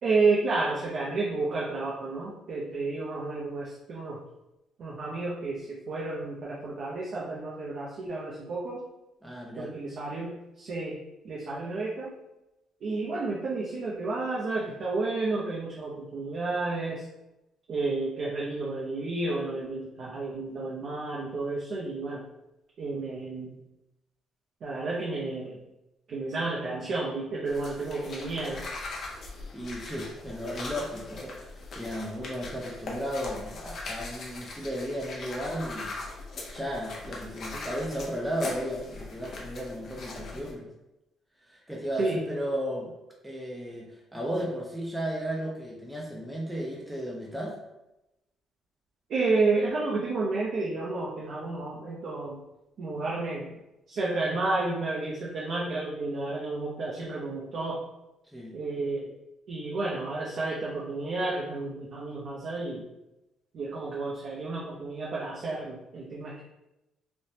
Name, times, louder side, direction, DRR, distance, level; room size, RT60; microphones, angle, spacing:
voice 1, 0.0-4.2 4.8-8.8 9.6-11.0 11.2-12.1 12.8-17.0 17.7-22.2 22.8-23.6 24.6-25.6 26.1-28.8 42.0-42.2 49.1-52.4 52.8-53.5 53.9-57.9 58.5-59.1 59.5-62.8 63.5-66.4, right 3 dB, 55° right, -4 dB, 0.5 m, -31 dB
voice 2, 9.2-9.7 29.5-35.9 36.5-40.7 41.5-42.9 43.2-47.5 58.3-58.5, equal, 5° right, -3 dB, 0.5 m, -34 dB
sound 1, 27.5-40.5, left 3 dB, 50° left, 0.6 m, -40 dB
3.3 x 2.0 x 2.7 m, 0.93 s
cardioid pair, 105°, 0 cm